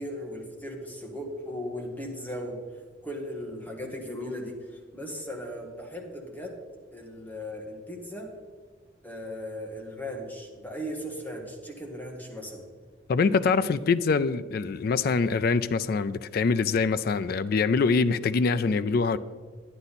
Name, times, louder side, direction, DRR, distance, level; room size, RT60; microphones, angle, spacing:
voice 1, 0.0-2.6 3.0-6.6 6.9-8.3 9.0-12.7, equal, 10° left, 1.4 m, -37 dB
voice 2, 13.1-19.2, left 4 dB, 50° left, 0.3 m, -24 dB
10.5 x 9.9 x 4.1 m
head